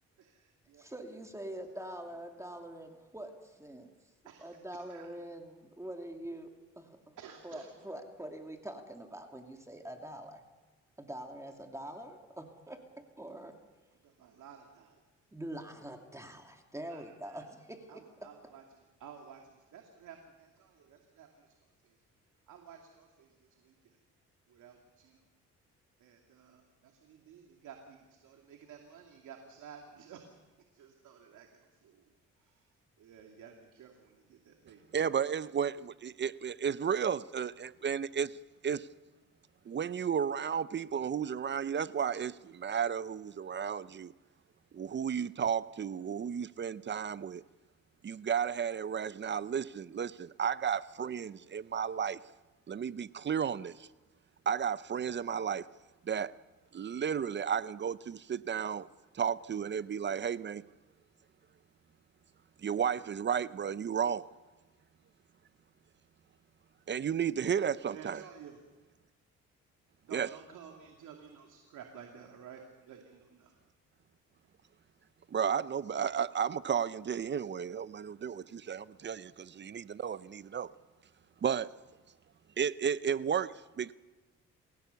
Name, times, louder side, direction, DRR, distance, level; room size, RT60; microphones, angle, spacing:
voice 1, 0.2-0.9 4.2-4.5 4.9-5.1 7.2-7.7 14.0-15.0 16.9-17.5 17.9-18.6 19.0-19.4 19.7-21.5 22.5-23.3 23.6-23.7 24.5-25.2 26.0-30.2 30.7-31.5 31.8-32.0 32.4-32.5 33.0-34.8 67.9-68.6 70.0-73.5, right 7 dB, 80° right, 2.4 m, -53 dB
voice 2, 0.8-3.9 4.4-7.2 7.4-10.4 11.0-13.6 15.3-18.3, right 1 dB, 10° right, 2.6 m, -44 dB
voice 3, 34.9-38.4 38.6-38.9 39.7-44.1 44.7-47.4 48.0-52.2 52.7-53.9 54.5-55.7 56.0-56.3 56.7-58.9 59.1-60.6 62.6-64.3 66.9-68.2 70.1-70.3 75.3-80.7 81.4-81.8 82.6-83.9, right 7 dB, 35° right, 0.6 m, -33 dB
28.0 x 16.5 x 7.0 m
cardioid pair, 90°, 30 cm